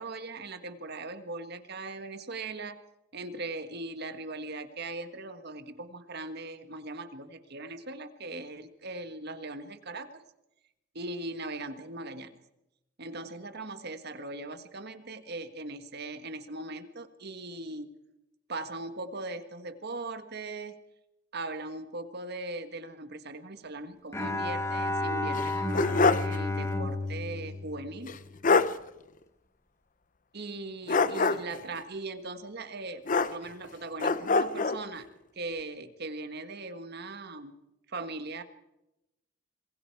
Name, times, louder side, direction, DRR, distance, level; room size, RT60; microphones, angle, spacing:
voice 1, 0.0-2.8 3.1-10.2 10.9-12.3 13.0-17.9 18.5-20.8 21.3-28.2 30.3-35.1 35.3-38.4, right 2 dB, 55° right, 9 dB, 1.6 m, -39 dB
Bowed string instrument, 24.1-28.6, left 2 dB, 15° left, 1.7 m, -32 dB
sound 1, 25.3-26.4 26.7-26.8 28.1-28.2 28.4-28.8 30.9-31.6 33.1-33.7 34.0-34.8, left 4 dB, 40° left, 0.8 m, -25 dB
26.0 x 22.0 x 4.7 m, 0.90 s
head